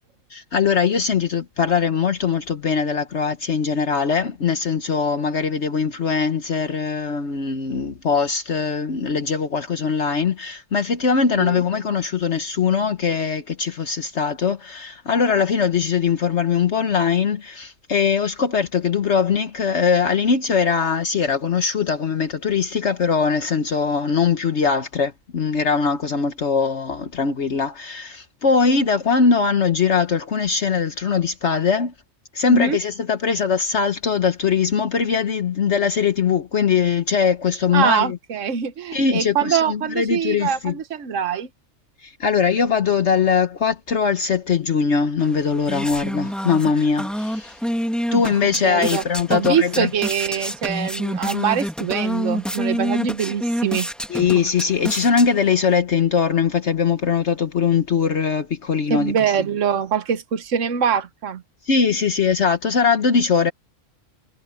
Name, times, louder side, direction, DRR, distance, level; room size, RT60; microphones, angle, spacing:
voice 1, 0.3-31.9 32.3-38.2 38.9-40.7 42.0-47.6 48.1-49.9 54.1-59.1 61.7-63.5, left 6 dB, 60° left, 1.4 m, -21 dB
voice 2, 37.7-41.5 48.4-49.0 49.3-53.9 58.9-61.4, right 8 dB, 70° right, 1.5 m, -23 dB
sound 1, 45.2-55.7, equal, ahead, 2.0 m, -28 dB
omnidirectional pair, 1.4 m